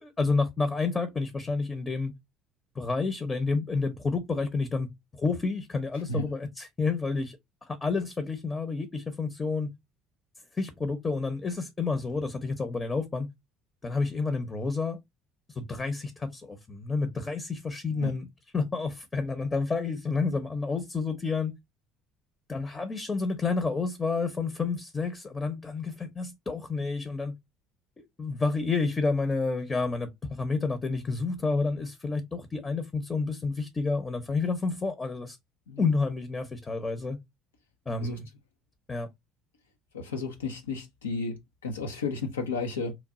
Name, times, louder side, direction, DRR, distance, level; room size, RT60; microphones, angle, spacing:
voice 1, 0.0-2.1 2.8-7.4 7.7-9.7 10.6-13.3 13.8-15.0 15.5-18.3 18.5-21.5 22.5-27.3 28.2-35.4 35.8-37.2 37.9-38.3 38.9-39.1, left 4 dB, 25° left, 0.7 m, -29 dB
voice 2, 39.9-42.9, left 3 dB, 85° left, 0.6 m, -33 dB
3.1 x 2.3 x 3.6 m
hypercardioid pair, 60°, 0 cm